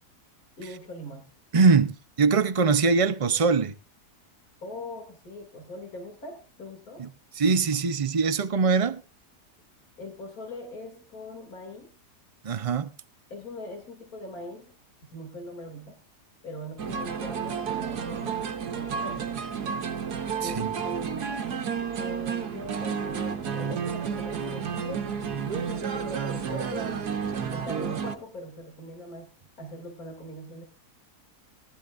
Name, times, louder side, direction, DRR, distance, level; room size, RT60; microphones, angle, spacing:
voice 1, 0.6-1.3 4.6-7.0 10.0-11.9 13.3-14.7 15.1-16.0 16.4-19.3 20.4-21.3 22.0-25.1 25.5-27.0 27.5-29.3 29.6-30.6, left 1 dB, 65° left, 3.1 m, -41 dB
voice 2, 1.5-3.8 7.0-7.1 7.3-9.0 12.4-12.9 20.4-20.7, right 4 dB, 50° right, 0.4 m, -22 dB
sound 1, 16.8-28.2, right 7 dB, 80° right, 1.7 m, -31 dB
19.0 x 13.0 x 2.5 m
omnidirectional pair, 1.7 m